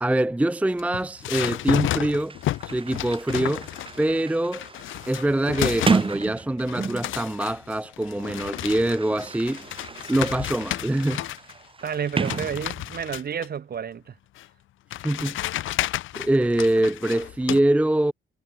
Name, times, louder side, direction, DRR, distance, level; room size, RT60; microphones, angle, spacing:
voice 1, 0.0-2.4 2.6-3.7 4.0-4.7 5.1-9.6 10.1-11.3 15.0-15.4 16.1-18.1, right 1 dB, 5° right, 0.6 m, -24 dB
sound 1, 0.7-4.1 4.5-6.3 6.6-11.5 11.8-13.5 14.4-14.5 14.9-17.6, left 15 dB, 80° left, 1.1 m, -32 dB
Sliding door, 1.9-2.0 2.2-7.2 8.2-13.1, right 4 dB, 25° right, 1.4 m, -32 dB
voice 2, 11.8-14.2, right 7 dB, 50° right, 4.3 m, -30 dB
cardioid pair, 90°, 20 cm